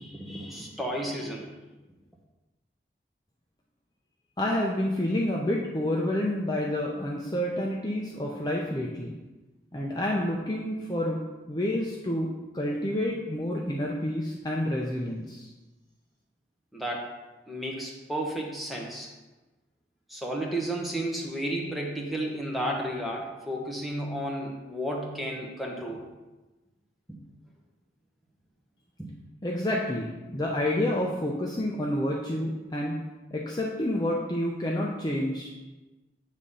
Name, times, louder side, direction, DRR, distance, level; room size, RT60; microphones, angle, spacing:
voice 1, 0.0-1.5 16.7-17.1 17.5-19.1 20.1-26.0 27.1-27.2 29.0-29.1, right 1 dB, ahead, -2 dB, 1.0 m, -32 dB
voice 2, 4.4-9.1 9.7-11.2 11.5-12.3 12.5-15.5 29.4-33.0 33.3-35.5, left 1 dB, 25° left, -2 dB, 0.6 m, -29 dB
8.3 x 3.7 x 5.5 m, 1.1 s
head